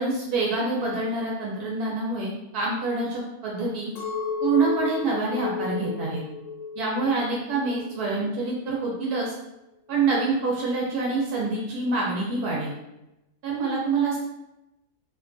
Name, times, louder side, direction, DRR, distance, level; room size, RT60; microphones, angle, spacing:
voice 1, 0.0-3.9 4.4-6.2 6.8-9.3 9.9-12.7 13.4-14.2, right 3 dB, 80° right, -3 dB, 1.1 m, -26 dB
Chink clink, 4.0-8.3 8.7-9.3, left 5 dB, 75° left, 1.2 m, -33 dB
2.8 x 2.2 x 2.5 m, 0.92 s
omnidirectional pair, 1.6 m